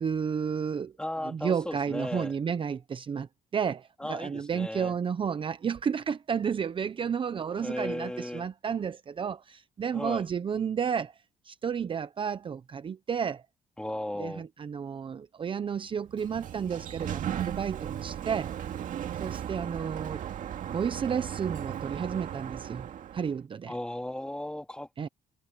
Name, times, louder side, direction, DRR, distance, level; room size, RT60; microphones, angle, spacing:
voice 1, 0.0-0.9 1.2-3.3 3.5-11.2 11.4-13.4 14.2-18.5 19.2-20.2 20.7-22.9 23.1-23.7 25.0-25.1, right 7 dB, 35° right, 0.8 m, -32 dB
voice 2, 1.0-2.3 4.0-4.9 7.3-8.5 9.9-10.2 13.8-14.4 23.7-24.9, left 1 dB, 5° left, 3.4 m, -36 dB
Sliding door, 16.0-23.4, right 10 dB, 60° right, 2.2 m, -36 dB
cardioid pair, 110°, 15 cm